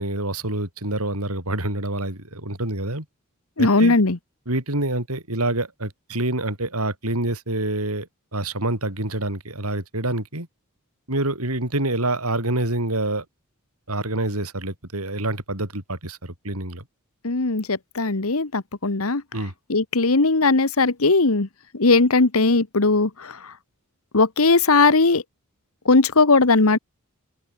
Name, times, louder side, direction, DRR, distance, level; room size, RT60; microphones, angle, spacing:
voice 1, 0.0-3.1 3.6-4.0 4.5-10.5 11.1-13.2 13.9-16.8 19.3-19.5, right 1 dB, 85° right, 7.2 m, -27 dB
voice 2, 3.6-4.2 17.2-19.2 19.7-21.5 21.8-23.1 24.1-25.2 25.9-26.8, left 3 dB, 75° left, 1.4 m, -18 dB
open air
head